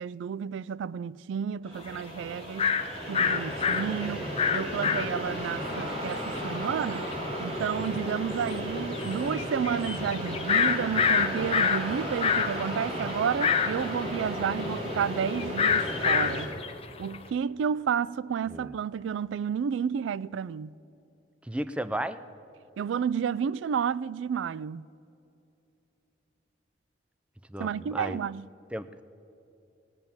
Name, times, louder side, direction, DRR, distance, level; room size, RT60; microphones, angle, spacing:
voice 1, 0.0-2.7 3.1-7.1 7.4-16.5 17.0-20.7 22.8-24.9 27.6-28.5, right 7 dB, 85° right, 0.3 m, -31 dB
sound 1, 1.6-16.5, equal, 35° right, 3.1 m, -34 dB
sound 2, 1.9-2.0 2.6-2.8 3.1-5.4 5.8-5.9 6.1-6.4 7.1-7.2 7.8-7.9 8.4-8.5 8.9-11.8 12.1-17.2, left 7 dB, 30° left, 0.7 m, -26 dB
voice 2, 21.5-22.2 27.5-28.2 28.7-29.0, right 1 dB, 5° right, 0.4 m, -34 dB
19.5 x 9.0 x 7.2 m
head